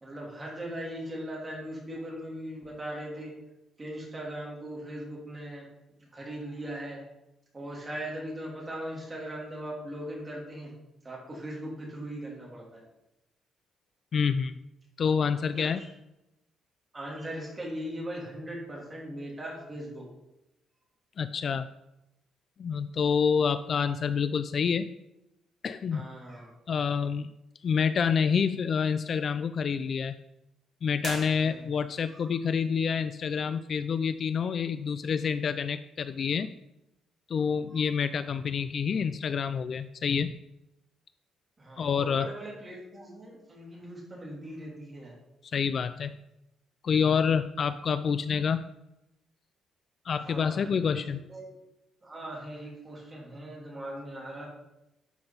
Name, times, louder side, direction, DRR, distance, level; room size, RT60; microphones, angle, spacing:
voice 1, 0.0-3.3 3.8-5.7 6.0-7.0 7.5-10.7 11.0-12.8 15.5-15.9 16.9-20.0 25.9-26.5 31.3-31.7 32.0-32.2 37.7-37.8 41.6-45.1 50.2-51.5 52.0-54.5, right 1 dB, 20° right, -3 dB, 3.1 m, -39 dB
voice 2, 14.1-14.6 15.0-15.8 21.2-21.7 22.6-24.9 25.6-26.0 26.7-27.3 27.6-30.1 30.8-36.5 37.3-40.3 41.8-42.3 45.5-46.1 46.8-48.7 50.1-51.2, left 6 dB, 40° left, 12 dB, 0.3 m, -27 dB
sound 1, 31.0-32.0, right 3 dB, 35° right, 2.0 m, -40 dB
11.5 x 5.8 x 4.0 m, 0.90 s
cardioid pair, 145°, 0 cm